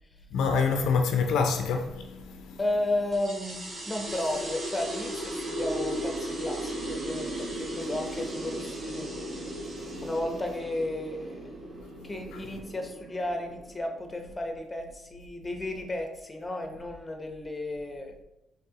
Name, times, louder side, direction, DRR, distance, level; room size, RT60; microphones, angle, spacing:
voice 1, 0.3-2.6 12.0-12.1, left 5 dB, 80° left, 0.4 m, -26 dB
voice 2, 2.6-3.6 3.9-9.1 10.0-11.5 12.0-18.1, left 1 dB, 20° left, 0.7 m, -33 dB
sound 1, 3.1-14.1, right 1 dB, 45° right, 1.2 m, -36 dB
4.7 x 3.0 x 2.8 m
cardioid pair, 90°, 0 cm